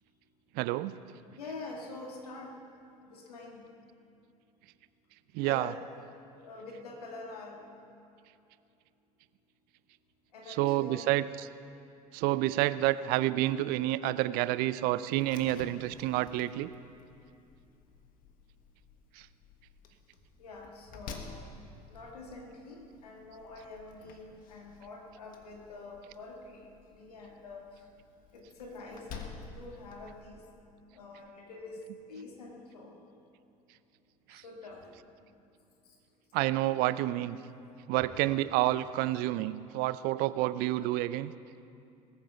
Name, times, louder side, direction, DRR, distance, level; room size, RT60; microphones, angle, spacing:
voice 1, 0.6-0.9 5.3-5.7 10.6-11.2 12.1-16.7 34.3-34.4 36.3-37.4 37.9-41.3, right 16 dB, 50° right, 16 dB, 0.5 m, -29 dB
voice 2, 1.4-2.6 3.1-3.7 5.4-5.7 6.4-7.6 10.3-11.0 20.4-21.4 21.9-27.8 28.3-30.4 30.9-31.8 32.1-33.0 34.3-34.8, left 3 dB, 75° left, 1 dB, 1.9 m, -46 dB
Slam, 15.2-30.2, left 4 dB, 45° left, 1.4 m, -51 dB
20.0 x 8.9 x 5.7 m, 2.6 s
figure-of-eight pair, 65°, 20 cm